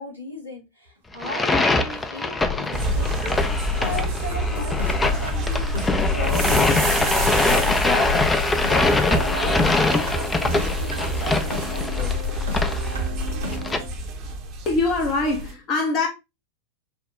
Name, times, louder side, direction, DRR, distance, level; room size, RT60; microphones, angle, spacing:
voice 1, 0.0-7.1 7.4-12.1, left 1 dB, 85° left, 1.8 m, -35 dB
sound 1, 1.1-13.8, left 3 dB, 10° left, 0.4 m, -23 dB
sound 2, 1.4-1.5 1.9-2.1 2.4-2.6 2.9-13.9, right 3 dB, 70° right, 0.8 m, -34 dB
sound 3, 2.7-15.5, left 1 dB, 40° right, 0.8 m, -27 dB
voice 2, 14.7-16.1, left 3 dB, 35° left, 0.8 m, -23 dB
5.4 x 2.2 x 3.0 m
figure-of-eight pair, 90°, 0 cm